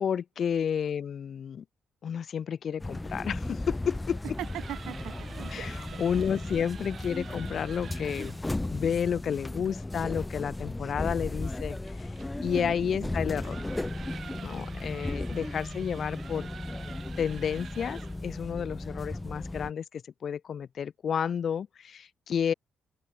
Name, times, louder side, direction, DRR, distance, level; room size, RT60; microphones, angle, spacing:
voice 1, 0.0-1.6 2.0-4.2 5.5-8.4 8.7-12.1 12.4-13.6 14.4-16.5 17.2-22.5, left 7 dB, 55° left, 1.2 m, -31 dB
sound 1, 2.8-19.7, left 2 dB, 15° left, 0.5 m, -36 dB
sound 2, 4.3-8.5 11.1-18.3, right 7 dB, 50° right, 1.1 m, -48 dB
voice 2, 4.4-6.0 6.5-6.7 12.5-13.1, right 14 dB, 85° right, 0.7 m, -41 dB
open air
cardioid pair, 90°, 0 cm